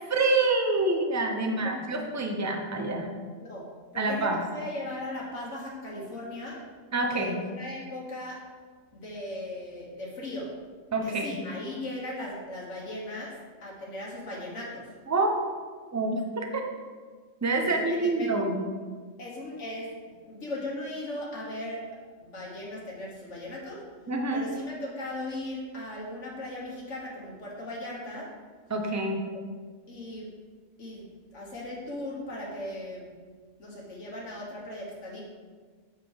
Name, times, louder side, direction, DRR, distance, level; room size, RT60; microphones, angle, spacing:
voice 1, 0.1-3.1 3.9-4.4 6.9-7.4 10.9-11.4 15.1-15.4 15.9-16.6 17.4-18.6 24.1-24.5 28.7-29.2, right 2 dB, 20° right, 3 dB, 0.6 m, -27 dB
voice 2, 1.4-1.8 3.4-6.6 7.1-8.5 8.9-10.5 11.0-14.9 17.6-18.3 19.2-20.0 20.3-21.9 22.2-23.8 24.3-28.3 29.3-29.4 29.9-30.3 30.8-31.1 31.3-33.1 33.6-35.2, left 1 dB, 75° left, -4 dB, 1.7 m, -38 dB
7.8 x 4.7 x 4.8 m, 1.5 s
omnidirectional pair, 1.3 m